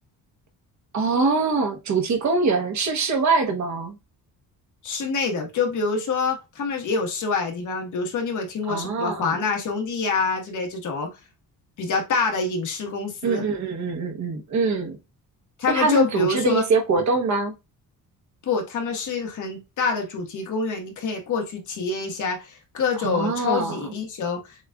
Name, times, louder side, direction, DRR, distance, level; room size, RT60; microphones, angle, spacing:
voice 1, 0.9-4.0 8.7-9.4 13.2-15.0 15.7-17.5 23.0-23.8, right 4 dB, 55° right, 1.1 m, -23 dB
voice 2, 4.8-11.1 11.8-13.4 15.6-16.7 18.4-24.5, left 4 dB, 60° left, 1.4 m, -26 dB
7.1 x 2.5 x 2.3 m
cardioid pair, 150°, 35 cm